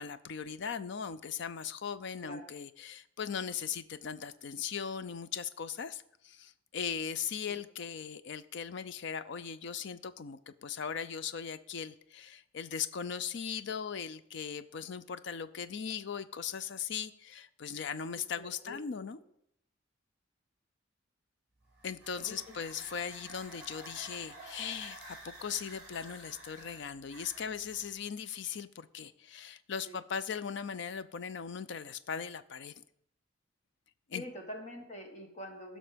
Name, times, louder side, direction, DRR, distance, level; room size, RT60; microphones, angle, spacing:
voice 1, 0.0-19.2 21.8-32.7 34.1-34.3, left 7 dB, 65° left, 14 dB, 0.5 m, -39 dB
voice 2, 18.0-18.8 22.2-22.3 29.8-30.0 34.1-35.8, left 1 dB, 35° left, 3 dB, 1.5 m, -45 dB
sound 1, 21.6-27.9, right 2 dB, 5° right, 5.4 m, -51 dB
15.5 x 6.3 x 5.1 m, 0.73 s
head